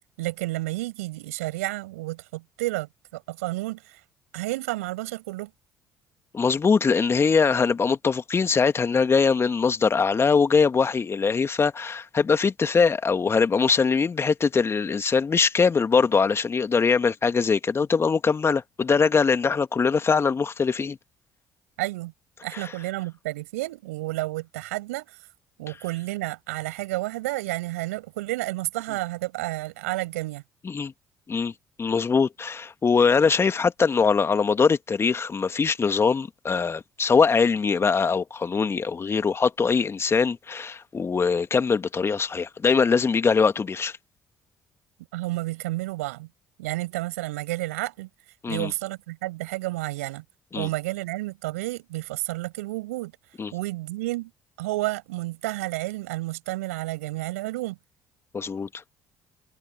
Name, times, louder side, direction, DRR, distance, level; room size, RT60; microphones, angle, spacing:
voice 1, 0.2-4.0 4.3-5.5 21.8-22.1 22.4-25.2 25.6-30.4 45.1-46.3 46.6-48.1 48.5-50.2 50.5-53.1 53.5-54.3 54.6-57.8, right 19 dB, 80° right, 7.1 m, -31 dB
voice 2, 6.3-21.0 22.5-22.6 30.6-30.9 31.3-31.5 31.8-44.0 48.4-48.7 50.5-50.7 53.4-53.5 58.3-58.7, left 5 dB, 35° left, 1.9 m, -22 dB
hypercardioid pair, 50°, 8 cm